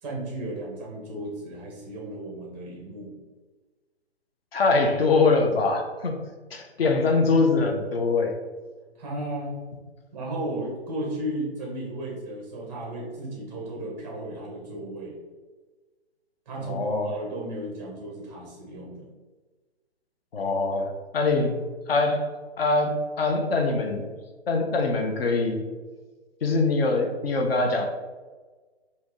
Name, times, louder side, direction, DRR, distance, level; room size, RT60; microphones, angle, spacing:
voice 1, 0.0-3.1 8.9-9.6 10.1-15.2 16.5-19.1, right 1 dB, 5° right, -3 dB, 0.5 m, -34 dB
voice 2, 4.5-6.2 6.5-8.3 16.6-17.1 20.3-21.6 21.9-22.3 22.6-24.0 24.5-25.7 26.4-27.9, left 3 dB, 60° left, 3 dB, 0.8 m, -23 dB
4.6 x 2.8 x 3.5 m, 1.3 s
figure-of-eight pair, 135°, 33 cm